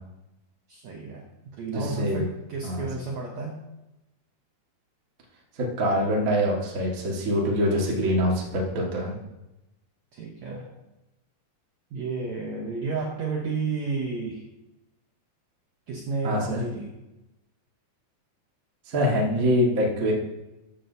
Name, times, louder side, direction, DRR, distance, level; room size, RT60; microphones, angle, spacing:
voice 1, 0.7-1.2 1.5-3.6 10.1-10.7 11.9-14.4 15.9-16.9, right 4 dB, 75° right, 0 dB, 1.7 m, -31 dB
voice 2, 1.7-2.2 2.6-2.9 5.6-9.1 16.2-16.6 18.9-20.1, equal, 45° right, -2 dB, 1.1 m, -24 dB
14.0 x 8.3 x 2.7 m, 0.97 s
omnidirectional pair, 4.5 m